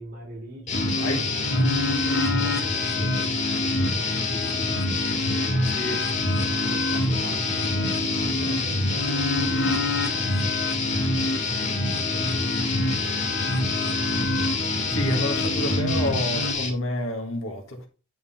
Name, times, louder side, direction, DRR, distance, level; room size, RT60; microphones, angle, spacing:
voice 1, 0.0-5.7 6.3-12.4 12.8-13.4, right 1 dB, 60° right, 3.3 m, -43 dB
sound 1, 0.7-16.5, left 2 dB, 50° left, 1.2 m, -29 dB
sound 2, 0.7-16.7, left 2 dB, 35° left, 1.8 m, -27 dB
voice 2, 0.9-1.2 5.7-6.0 14.9-17.9, left 1 dB, 85° left, 1.5 m, -29 dB
9.4 x 3.7 x 4.3 m
head